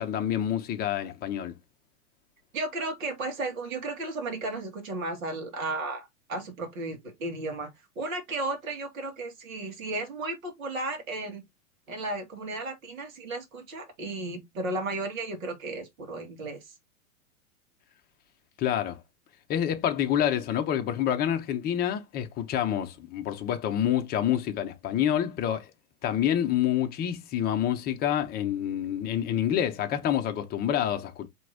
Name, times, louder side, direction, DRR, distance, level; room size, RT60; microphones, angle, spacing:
voice 1, 0.0-1.5 18.6-19.0 19.5-25.7 26.0-31.3, left 10 dB, 20° left, 0.7 m, -27 dB
voice 2, 2.5-11.4 11.9-16.7, right 2 dB, 65° right, 2.0 m, -34 dB
4.6 x 3.5 x 2.8 m
hypercardioid pair, 115°, 45 cm